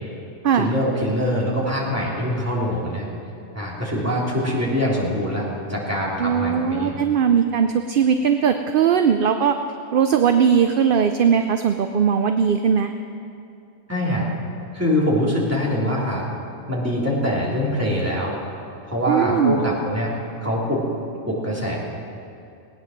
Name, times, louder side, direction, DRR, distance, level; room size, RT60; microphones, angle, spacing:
voice 1, 0.6-3.1 3.5-7.0 13.9-14.3 14.7-16.2 16.7-18.3 18.8-20.1 20.4-20.8 21.3-21.8, equal, 15° right, -6 dB, 3.3 m, -23 dB
voice 2, 6.2-9.5 9.9-12.9 19.1-19.6, right 7 dB, 55° right, 7 dB, 0.7 m, -19 dB
19.0 x 9.4 x 6.6 m, 2.6 s
omnidirectional pair, 1.2 m